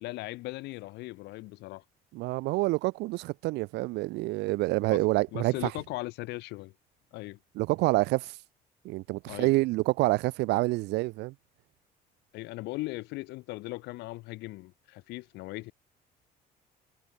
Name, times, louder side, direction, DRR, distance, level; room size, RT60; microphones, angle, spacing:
voice 1, 0.0-1.8 4.9-5.0 5.3-6.7 7.1-7.4 9.2-9.5 12.3-15.7, left 20 dB, 90° left, 1.2 m, -38 dB
voice 2, 2.1-5.7 7.6-8.4 8.8-11.3, right 21 dB, 90° right, 1.0 m, -27 dB
cardioid pair, 110°, 17 cm